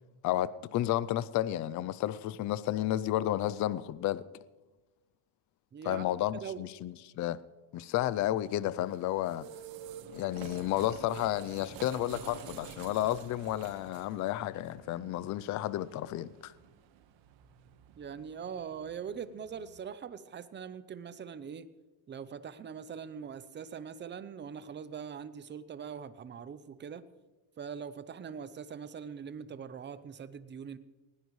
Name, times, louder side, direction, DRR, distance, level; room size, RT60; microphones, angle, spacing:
voice 1, 0.2-4.2 5.8-7.4 7.7-9.5 10.1-16.5, left 13 dB, 40° left, 0.4 m, -32 dB
voice 2, 5.7-6.0 6.4-6.6 18.0-21.7 22.1-27.0 27.6-30.8, right 7 dB, 20° right, 0.6 m, -42 dB
sound 1, 8.5-19.9, right 8 dB, 65° right, 1.4 m, -50 dB
19.5 x 17.5 x 3.2 m
cardioid pair, 150°, 49 cm